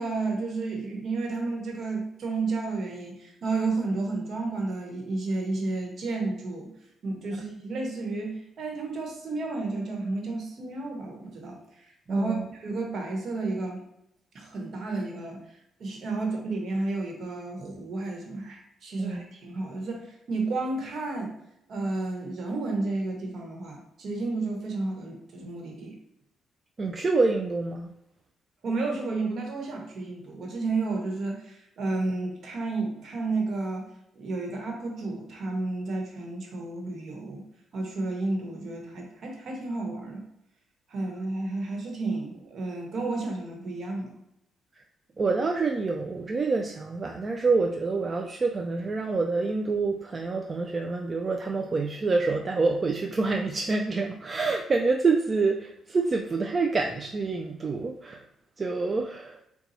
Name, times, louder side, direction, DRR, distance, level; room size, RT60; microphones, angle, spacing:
voice 1, 0.0-6.7 7.0-13.8 14.3-15.4 15.8-21.3 21.7-26.0 28.6-33.9 34.1-37.4 37.7-40.2 40.9-44.1, right 3 dB, 60° right, 1 dB, 1.1 m, -31 dB
voice 2, 12.1-12.5 19.0-19.3 26.8-27.9 45.2-58.2 58.6-59.4, right 3 dB, 35° right, 2 dB, 0.3 m, -27 dB
4.1 x 2.3 x 4.0 m, 0.80 s
cardioid pair, 90°, 0 cm